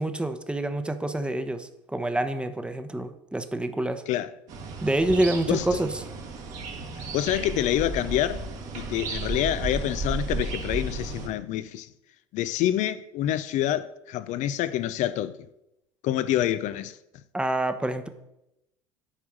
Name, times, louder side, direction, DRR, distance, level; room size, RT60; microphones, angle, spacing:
voice 1, 0.0-4.0 4.8-5.9 17.3-18.1, right 1 dB, 5° right, 0.9 m, -27 dB
sound 1, 4.5-11.3, right 3 dB, 60° right, 1.8 m, -34 dB
voice 2, 5.5-5.8 7.1-8.5 8.7-11.9 12.3-15.4 16.0-17.0, left 12 dB, 60° left, 0.5 m, -27 dB
8.7 x 4.6 x 6.4 m
hypercardioid pair, 75°, 14 cm